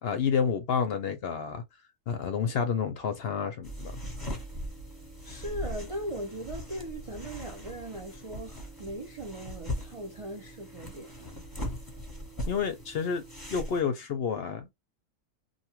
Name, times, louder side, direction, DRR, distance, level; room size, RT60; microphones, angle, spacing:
voice 1, 0.0-1.6 2.1-3.9 12.5-13.2 13.5-14.7, left 6 dB, 60° left, 0.7 m, -29 dB
sound 1, 3.6-13.8, equal, 20° left, 0.9 m, -40 dB
voice 2, 5.2-11.4, right 1 dB, 55° right, 0.3 m, -39 dB
2.7 x 2.3 x 2.8 m
omnidirectional pair, 1.4 m